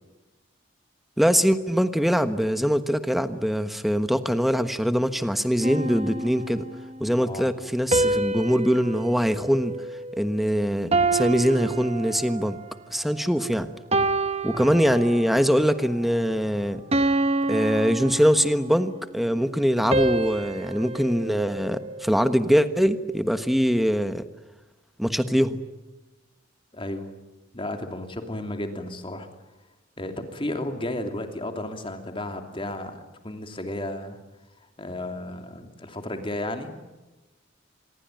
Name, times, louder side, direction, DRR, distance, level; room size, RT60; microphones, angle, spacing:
voice 1, 1.2-6.6 7.0-9.7 10.2-12.6 12.9-13.7 14.4-16.9 17.5-24.2 25.0-25.6, equal, ahead, 10 dB, 1.3 m, -23 dB
sound 1, 5.6-6.9 7.9-10.4 10.9-12.6 13.2-13.4 13.9-15.5 15.9-16.2 16.9-18.8 19.9-22.3, right 2 dB, 30° right, 1.4 m, -28 dB
voice 2, 7.2-7.5 14.5-14.8 26.7-27.1 27.5-29.3 30.0-34.2 34.6-36.7, left 1 dB, 25° left, 5 dB, 2.9 m, -33 dB
26.5 x 22.5 x 9.1 m, 1.1 s
head